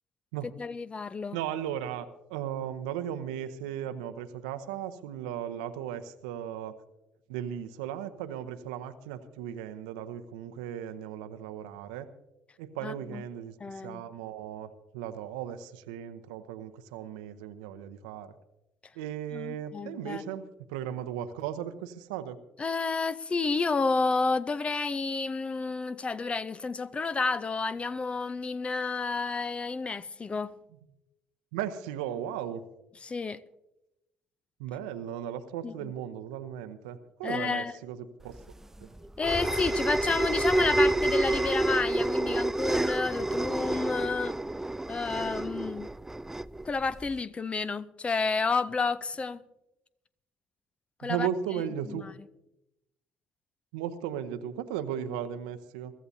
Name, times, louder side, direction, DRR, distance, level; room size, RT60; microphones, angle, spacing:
voice 1, 0.6-1.4 12.8-13.2 13.6-14.0 19.3-20.3 22.6-30.5 33.0-33.4 35.6-35.9 37.2-37.7 39.2-44.4 44.9-45.9 46.6-49.4 51.0-51.3 51.9-52.1, left 4 dB, 30° left, 0.7 m, -30 dB
voice 2, 1.3-6.7 7.3-12.1 12.6-18.3 19.0-20.4 20.7-22.4 31.5-32.6 34.6-38.0 38.2-38.4 51.0-52.0 53.7-55.9, right 10 dB, 75° right, 0.8 m, -36 dB
sound 1, 38.3-47.2, right 2 dB, 10° right, 0.4 m, -29 dB
23.0 x 13.5 x 2.8 m
hypercardioid pair, 55°, 4 cm